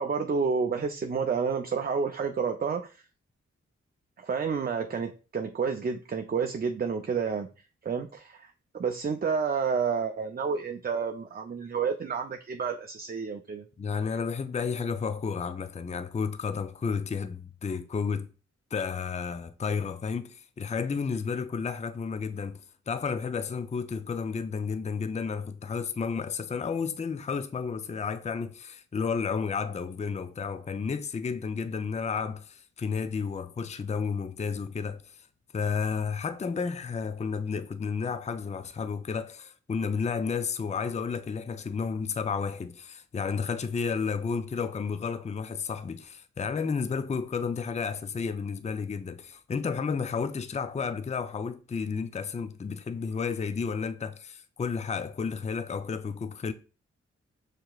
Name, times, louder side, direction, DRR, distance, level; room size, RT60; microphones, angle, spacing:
voice 1, 0.0-2.9 4.2-7.5 7.8-8.5 8.7-13.6, right 5 dB, 30° right, 0.5 m, -30 dB
voice 2, 13.8-18.3 18.7-22.6 22.9-35.2 35.5-56.5, left 5 dB, 25° left, 0.4 m, -32 dB
6.6 x 2.9 x 2.4 m
cardioid pair, 50°, 29 cm